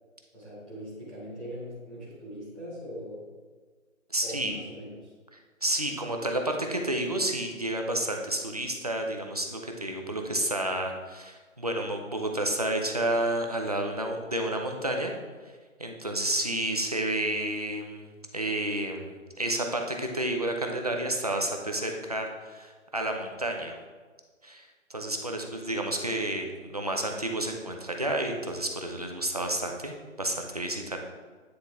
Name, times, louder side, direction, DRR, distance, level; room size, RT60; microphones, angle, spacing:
voice 1, 0.3-3.3 4.2-5.1, equal, ahead, -12 dB, 1.0 m, -41 dB
voice 2, 4.1-4.5 5.6-15.1 15.8-23.7 24.4-31.0, right 1 dB, 30° right, 2 dB, 0.5 m, -30 dB
9.5 x 3.9 x 3.4 m, 1.5 s
figure-of-eight pair, 160°, 40 cm